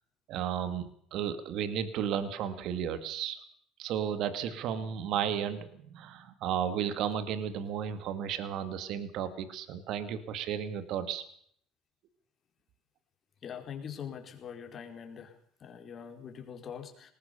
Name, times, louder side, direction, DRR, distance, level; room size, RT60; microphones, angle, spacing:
voice 1, 0.3-3.4 3.8-11.2, right 9 dB, 65° right, 11 dB, 2.2 m, -33 dB
voice 2, 13.4-15.3 15.6-17.1, left 8 dB, 45° left, 4 dB, 4.6 m, -43 dB
21.0 x 19.5 x 6.9 m, 0.64 s
supercardioid pair, 95°, 0 cm